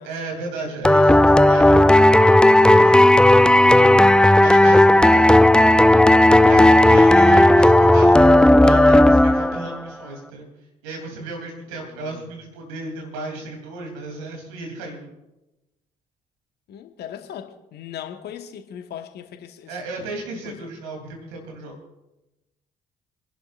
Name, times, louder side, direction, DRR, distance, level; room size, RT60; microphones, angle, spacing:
voice 1, 0.0-5.4 6.4-10.5 10.8-15.1 19.7-21.8, right 2 dB, 70° right, 1 dB, 3.2 m, -34 dB
sound 1, 0.8-9.8, left 1 dB, 5° left, 0.4 m, -13 dB
voice 2, 11.7-12.3 16.7-20.1 20.4-20.7, left 9 dB, 55° left, 7 dB, 1.3 m, -39 dB
28.0 x 11.0 x 2.5 m, 0.97 s
figure-of-eight pair, 45°, 20 cm